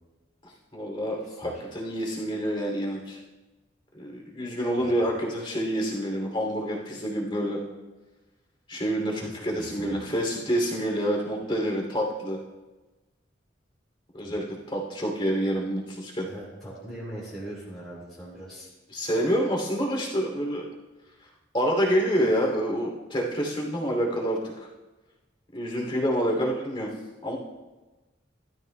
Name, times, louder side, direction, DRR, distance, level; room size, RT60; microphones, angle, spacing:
voice 1, 0.4-3.2 3.9-7.6 8.7-12.4 14.1-16.3 18.9-20.6 21.5-24.5 25.5-26.9 27.2-27.4, equal, 25° left, 0 dB, 2.7 m, -27 dB
voice 2, 1.2-1.6 4.8-4.9 9.2-10.1 14.2-14.4 16.3-18.7, right 1 dB, ahead, -8 dB, 3.1 m, -41 dB
16.5 x 13.0 x 2.2 m, 1.1 s
head